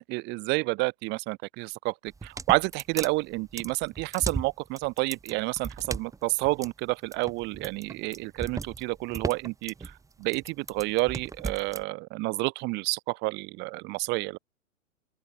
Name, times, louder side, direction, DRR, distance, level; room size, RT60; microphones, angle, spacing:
voice 1, 0.0-9.9 10.2-14.4, right 25 dB, 25° right, 1.4 m, -29 dB
sound 1, 2.1-11.8, right 4 dB, 10° right, 2.9 m, -36 dB
open air
figure-of-eight pair, 115°, 40 cm